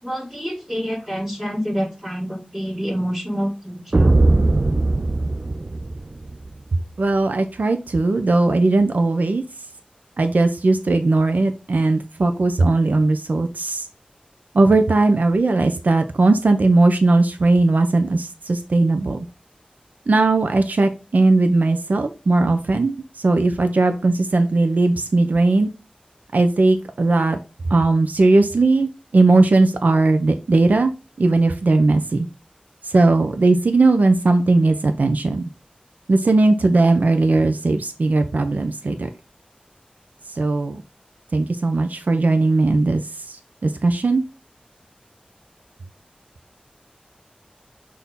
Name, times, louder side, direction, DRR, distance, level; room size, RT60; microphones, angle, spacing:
voice 1, 0.0-4.1, equal, 10° right, -2 dB, 1.9 m, -27 dB
sound 1, 3.9-6.5, right 2 dB, 40° right, 0.4 m, -19 dB
voice 2, 7.0-9.4 10.2-13.9 14.5-19.3 20.1-25.7 26.3-27.4 27.6-30.9 31.2-32.3 32.8-35.5 36.1-39.1 40.3-40.8 41.3-44.2, right 2 dB, 90° right, 7 dB, 0.6 m, -18 dB
6.3 x 2.8 x 5.4 m, 0.29 s
wide cardioid pair, 65°, 3 cm